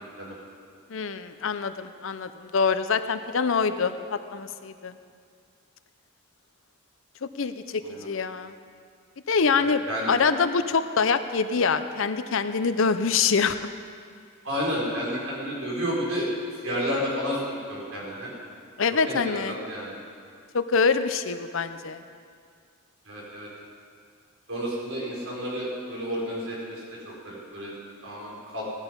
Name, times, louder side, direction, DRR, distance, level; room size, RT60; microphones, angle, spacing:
voice 1, 0.9-4.9 7.2-8.5 9.3-9.8 10.1-13.6 18.8-19.6 20.5-22.0, left 5 dB, 65° left, 11 dB, 0.6 m, -25 dB
voice 2, 9.6-10.1 14.4-16.3 16.6-18.3 18.9-19.9 23.0-23.5 24.5-27.7 28.0-28.7, equal, 65° right, -4 dB, 4.8 m, -31 dB
17.5 x 11.5 x 5.4 m, 2.2 s
head